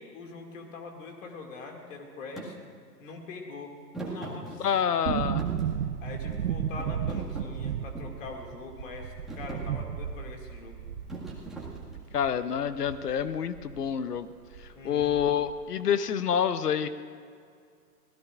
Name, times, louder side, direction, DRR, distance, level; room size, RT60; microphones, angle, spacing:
voice 1, 0.0-2.7 3.0-3.7 4.0-4.7 6.0-10.8 14.7-15.1, left 3 dB, 50° left, 2 dB, 2.3 m, -43 dB
Thump thud, 2.4-2.5 3.9-5.0 5.4-6.4 6.8-8.2 8.8-9.0 9.3-9.7 11.1-12.2, right 2 dB, ahead, 1.8 m, -40 dB
voice 2, 4.6-5.4 12.1-14.3 14.6-16.9, left 8 dB, 70° left, 13 dB, 0.8 m, -27 dB
sound 1, 5.1-13.9 14.1-14.2 14.5-15.5 15.8-15.9, right 8 dB, 65° right, 0.8 m, -34 dB
24.5 x 17.0 x 2.5 m, 2.2 s
figure-of-eight pair, 125°, 49 cm